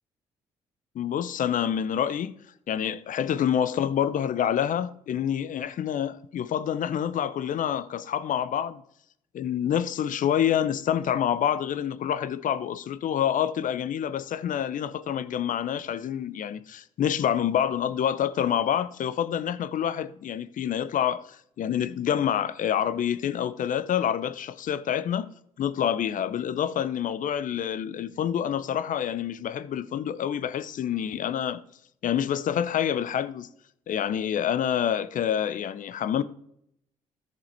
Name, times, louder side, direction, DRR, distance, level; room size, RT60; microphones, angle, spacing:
voice 1, 0.9-2.3 2.7-8.8 9.3-25.3 25.6-31.6 32.0-33.5 33.9-36.2, left 9 dB, 60° left, 0.7 m, -27 dB
13.5 x 5.2 x 4.4 m
hypercardioid pair, 50°, 16 cm